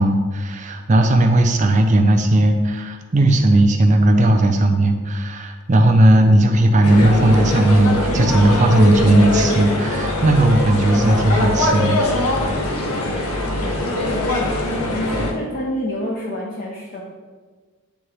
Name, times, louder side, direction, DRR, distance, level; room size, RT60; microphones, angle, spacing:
voice 1, 0.0-12.4 15.2-15.3, right 1 dB, 35° right, 4 dB, 0.5 m, -16 dB
sound 1, 6.8-15.3, left 1 dB, 80° left, 0.8 m, -22 dB
voice 2, 14.0-14.4 15.2-17.0, left 1 dB, 40° left, -3 dB, 0.6 m, -28 dB
9.2 x 3.4 x 3.2 m, 1.4 s
head